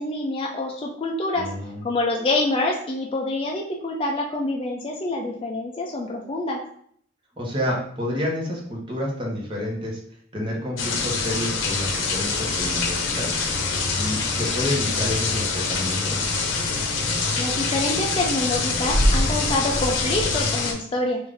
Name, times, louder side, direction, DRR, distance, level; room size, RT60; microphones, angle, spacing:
voice 1, 0.0-1.5 1.8-6.6 17.4-21.2, left 2 dB, 30° left, 0 dB, 0.4 m, -26 dB
voice 2, 1.3-1.8 7.4-10.0 10.3-13.4 13.9-16.3, left 1 dB, 25° right, -2 dB, 1.0 m, -29 dB
sound 1, 10.8-20.7, left 3 dB, 85° left, 0.8 m, -24 dB
3.8 x 2.5 x 3.4 m, 0.62 s
head